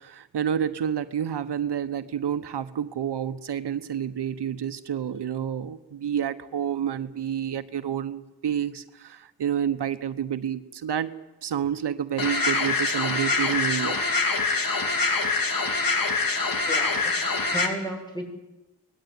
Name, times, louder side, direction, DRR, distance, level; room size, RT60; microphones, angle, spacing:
voice 1, 0.0-11.2 11.4-14.0 14.9-15.2, right 9 dB, 85° right, 11 dB, 1.1 m, -29 dB
sound 1, 12.2-17.7, left 3 dB, 55° left, 3.4 m, -25 dB
voice 2, 16.6-17.2 17.5-18.3, equal, 10° left, 3 dB, 7.1 m, -34 dB
24.0 x 19.5 x 9.6 m, 1.0 s
wide cardioid pair, 95°, 40 cm